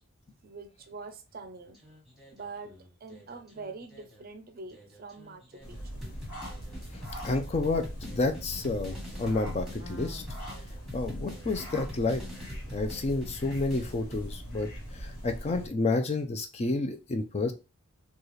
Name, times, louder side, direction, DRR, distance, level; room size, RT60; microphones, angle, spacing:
voice 1, 0.4-1.8 2.3-2.7 3.0-6.0, right 4 dB, 45° right, 0.5 m, -44 dB
sound 1, 1.7-4.2 4.7-14.3, left 1 dB, ahead, 1.2 m, -46 dB
sound 2, 5.6-15.7, equal, 80° left, 1.4 m, -41 dB
voice 2, 7.2-10.2 10.9-12.2 12.7-17.5, left 3 dB, 30° left, 0.4 m, -30 dB
4.0 x 2.4 x 3.1 m
head